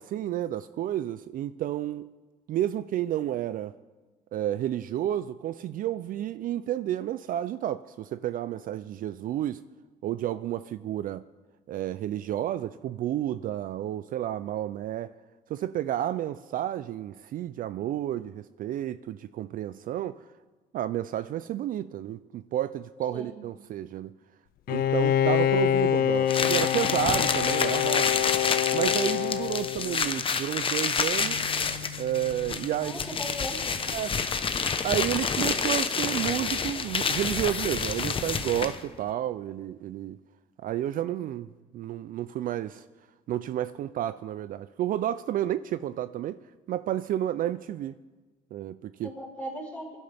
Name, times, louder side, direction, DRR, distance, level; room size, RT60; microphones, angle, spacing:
voice 1, 0.0-2.1 2.5-3.7 4.3-9.6 10.0-11.3 11.7-15.1 15.5-20.2 20.7-24.2 24.7-28.1 28.7-31.4 32.0-33.2 33.9-34.2 34.8-40.2 40.6-41.5 41.7-42.8 43.3-46.4 46.7-48.0 48.5-49.1, right 12 dB, 55° right, 0.4 m, -31 dB
Bowed string instrument, 24.7-30.3, left 11 dB, 60° left, 0.4 m, -26 dB
sound 1, 26.3-38.9, left 5 dB, 30° left, 0.9 m, -28 dB
Bass guitar, 31.2-37.4, left 4 dB, 75° right, 1.8 m, -47 dB
voice 2, 32.8-33.8 49.0-49.8, equal, 10° left, 4.7 m, -38 dB
23.0 x 12.0 x 3.5 m
cardioid pair, 110°, 17 cm